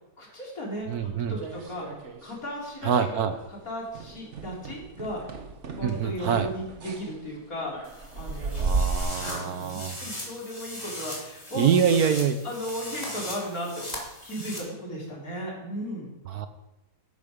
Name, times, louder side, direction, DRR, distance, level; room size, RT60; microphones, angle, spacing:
voice 1, 0.2-3.2 3.7-5.3 5.7-7.8 8.1-8.7 8.9-11.7 12.4-13.9 14.2-16.1, equal, 55° left, -3 dB, 4.3 m, -36 dB
sound 1, 0.9-2.4 2.6-3.0 3.3-3.5 3.9-9.0, right 4 dB, 45° right, 1.4 m, -34 dB
voice 2, 0.9-1.4 2.8-3.4 5.8-6.5 8.6-10.0 11.5-12.4 16.3-16.5, right 7 dB, 65° right, 9 dB, 1.3 m, -25 dB
sound 2, 7.8-14.6, left 1 dB, 20° left, 3.0 m, -39 dB
12.5 x 12.5 x 5.2 m, 0.98 s
omnidirectional pair, 1.8 m